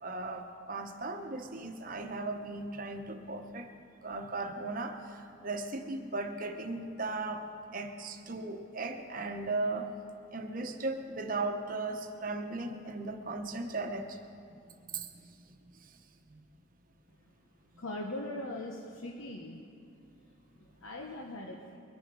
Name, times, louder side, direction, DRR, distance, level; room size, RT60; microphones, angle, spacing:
voice 1, 0.0-3.7 4.0-7.4 7.7-9.9 10.3-14.2 14.5-14.6 14.9-15.5 15.8-15.9 16.3-16.4, right 3 dB, 40° right, 5 dB, 1.0 m, -37 dB
voice 2, 17.8-19.6 20.0-21.8, left 1 dB, 80° left, 0 dB, 1.0 m, -41 dB
22.0 x 10.0 x 4.8 m, 2.5 s
head